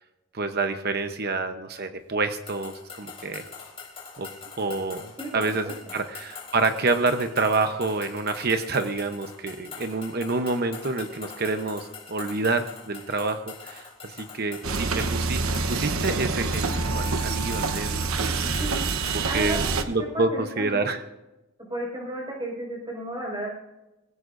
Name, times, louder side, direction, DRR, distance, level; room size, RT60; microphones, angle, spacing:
voice 1, 0.3-3.4 4.2-4.3 4.6-18.4 19.1-21.0, right 3 dB, 45° right, 7 dB, 0.9 m, -28 dB
sound 1, 2.5-19.3, left 5 dB, 25° left, 3.4 m, -44 dB
voice 2, 5.2-5.7 18.4-20.9 21.7-23.5, right 1 dB, 20° right, -2 dB, 5.4 m, -34 dB
sound 2, 14.6-19.8, right 4 dB, 80° right, 1.1 m, -26 dB
22.0 x 16.5 x 2.6 m, 0.97 s
head